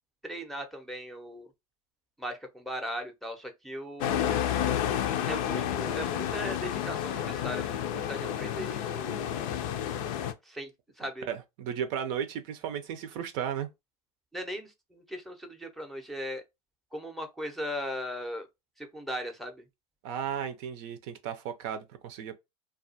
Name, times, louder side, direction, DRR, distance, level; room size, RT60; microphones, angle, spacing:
voice 1, 0.2-1.5 2.2-4.4 5.3-9.3 10.4-10.7 11.0-11.3 14.3-16.4 16.9-18.5 18.8-19.6, equal, ahead, 0.6 m, -38 dB
sound 1, 4.0-10.3, left 10 dB, 60° left, 0.5 m, -30 dB
voice 2, 11.2-13.7 20.0-22.4, right 8 dB, 55° right, 0.5 m, -35 dB
2.3 x 2.3 x 2.6 m
hypercardioid pair, 95°, 20 cm